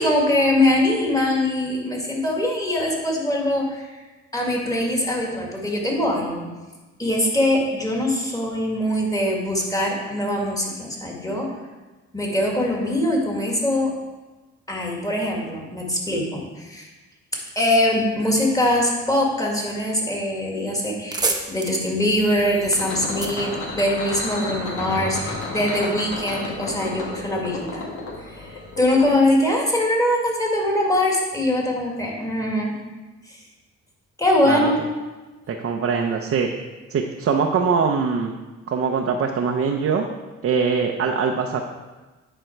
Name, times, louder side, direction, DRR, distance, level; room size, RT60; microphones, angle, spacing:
voice 1, 0.0-3.9 4.3-6.5 7.0-11.5 12.1-13.9 14.7-16.9 17.6-27.8 28.3-32.7 34.2-34.8, left 1 dB, 10° left, -1 dB, 2.0 m, -22 dB
sound 1, 21.0-24.4, right 3 dB, 15° right, 0.9 m, -30 dB
sound 2, 22.1-29.1, left 2 dB, 75° left, 1.8 m, -32 dB
voice 2, 35.5-36.5 36.9-38.3 38.7-40.1 40.4-41.6, right 5 dB, 50° right, 2 dB, 0.7 m, -22 dB
10.0 x 4.5 x 4.5 m, 1.2 s
cardioid pair, 90°, 30 cm